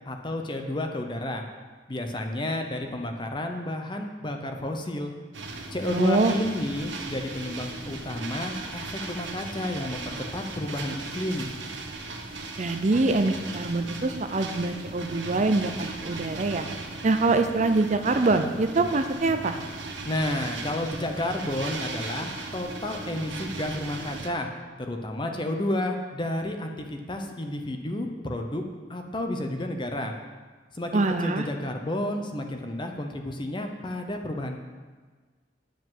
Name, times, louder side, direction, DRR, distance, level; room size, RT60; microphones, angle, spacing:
voice 1, 0.1-1.4 1.9-5.1 5.7-11.5 20.0-24.5 24.8-28.6 28.9-30.1 30.7-34.6, left 1 dB, 25° left, 4 dB, 0.9 m, -31 dB
sound 1, 5.3-24.3, right 3 dB, 90° right, 1.3 m, -37 dB
voice 2, 5.9-6.3 12.6-16.7 17.0-19.6 30.9-31.5, right 3 dB, 40° right, 7 dB, 0.6 m, -24 dB
9.9 x 5.2 x 7.6 m, 1.4 s
head